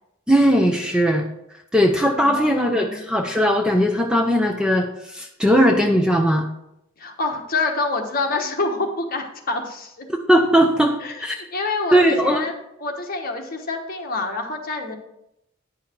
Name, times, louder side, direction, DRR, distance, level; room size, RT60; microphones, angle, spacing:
voice 1, 0.3-1.2 1.7-6.4 10.3-11.0 11.2-11.4 11.9-12.5, equal, 5° right, 3 dB, 0.5 m, -18 dB
voice 2, 2.2-3.0 7.0-10.1 11.0-11.3 11.5-12.5 12.8-14.9, left 3 dB, 40° left, 2 dB, 1.2 m, -27 dB
10.0 x 5.7 x 4.4 m, 0.82 s
head